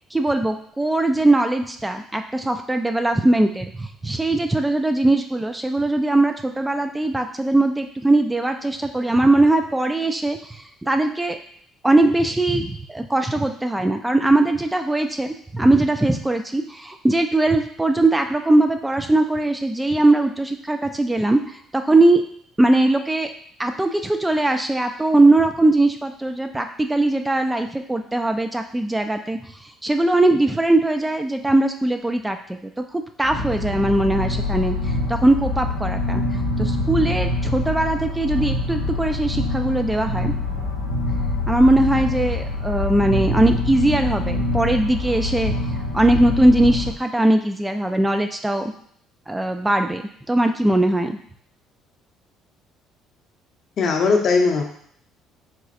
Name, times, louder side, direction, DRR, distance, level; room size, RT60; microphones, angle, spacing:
voice 1, 0.1-11.4 11.8-22.2 22.6-23.3 23.6-29.4 29.8-36.2 36.6-40.3 41.1-41.2 41.5-45.5 45.9-48.7 49.3-50.0 50.3-51.2, right 2 dB, 10° right, 6 dB, 0.3 m, -20 dB
sound 1, 33.2-46.9, left 2 dB, 90° left, 0.7 m, -25 dB
voice 2, 53.8-54.6, left 4 dB, 50° left, 3 dB, 0.6 m, -18 dB
4.0 x 2.3 x 2.6 m, 0.64 s
hypercardioid pair, 55°, 0 cm